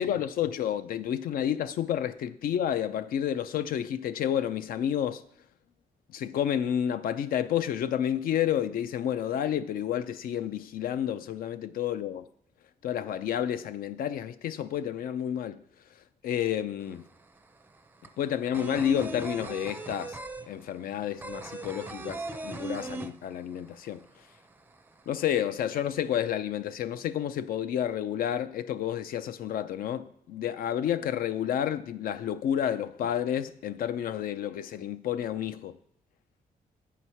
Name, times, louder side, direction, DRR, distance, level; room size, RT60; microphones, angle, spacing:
voice 1, 0.0-5.2 6.1-12.2 12.8-15.6 16.2-17.1 18.2-20.2 20.5-24.0 25.1-35.8, left 10 dB, 80° left, 0.5 m, -30 dB
sound 1, 16.8-16.9 17.2-23.7 24.0-24.1 24.4-25.2, right 3 dB, 15° right, 0.4 m, -38 dB
7.9 x 4.7 x 5.6 m
cardioid pair, 140°, 15 cm